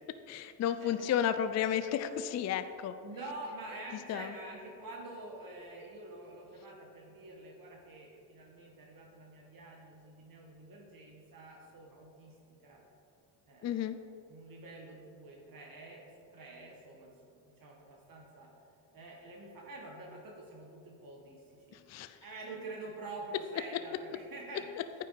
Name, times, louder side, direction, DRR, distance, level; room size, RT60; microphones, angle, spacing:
voice 1, 0.3-2.9 4.1-4.3 13.6-14.0 21.7-22.2, left 9 dB, 35° left, 11 dB, 0.4 m, -32 dB
voice 2, 0.8-1.2 3.0-12.8 13.4-13.9 14.3-18.5 18.9-21.8 22.2-24.7, right 2 dB, 45° right, -1 dB, 1.4 m, -47 dB
9.2 x 5.7 x 4.0 m, 2.6 s
supercardioid pair, 60°, 48 cm